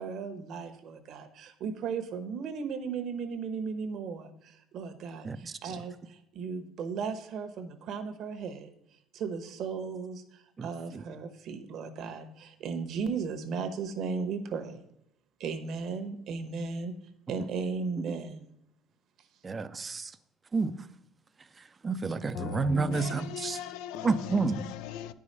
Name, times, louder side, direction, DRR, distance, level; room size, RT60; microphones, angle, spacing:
voice 1, 0.0-14.8 15.4-16.9 17.3-18.5 19.2-19.3, right 5 dB, 55° right, 1.1 m, -36 dB
voice 2, 10.6-11.0 19.4-20.1 20.5-20.8 21.6-23.6 24.0-24.6, right 4 dB, 25° right, 0.5 m, -30 dB
voice 3, 22.3-25.1, left 9 dB, 80° left, 0.5 m, -38 dB
9.5 x 4.9 x 5.5 m
cardioid pair, 120°, 0 cm